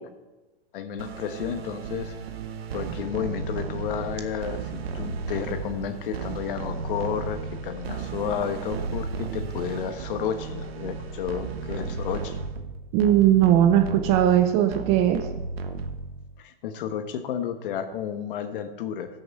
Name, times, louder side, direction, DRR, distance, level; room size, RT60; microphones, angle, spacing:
voice 1, 0.7-2.2 2.7-12.4 16.4-19.1, left 8 dB, 60° left, 8 dB, 1.3 m, -32 dB
sound 1, 1.0-16.4, right 4 dB, 80° right, 1.3 m, -34 dB
voice 2, 12.9-15.2, right 11 dB, 20° right, 8 dB, 0.4 m, -19 dB
14.0 x 6.4 x 4.7 m, 1.1 s
hypercardioid pair, 145°, 30 cm